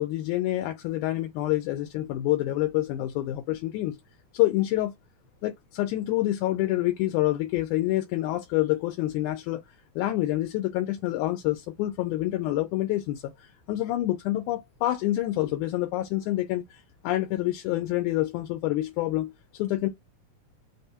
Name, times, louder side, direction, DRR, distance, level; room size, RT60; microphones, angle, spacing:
voice 1, 0.0-4.0 4.3-4.9 5.4-9.6 10.0-19.9, left 15 dB, 80° left, 2.0 m, -27 dB
5.4 x 2.2 x 2.7 m
omnidirectional pair, 3.7 m